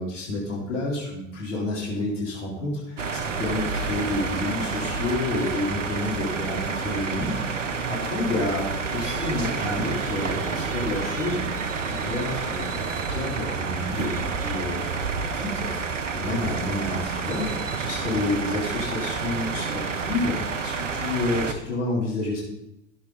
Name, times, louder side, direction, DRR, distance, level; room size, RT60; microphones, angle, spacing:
voice 1, 0.0-7.4 7.7-11.4 11.9-22.4, left 2 dB, 80° left, -5 dB, 4.1 m, -29 dB
sound 1, 3.0-21.5, right 5 dB, 85° right, 0.9 m, -29 dB
17.0 x 7.1 x 4.1 m, 0.87 s
figure-of-eight pair, 75°, 36 cm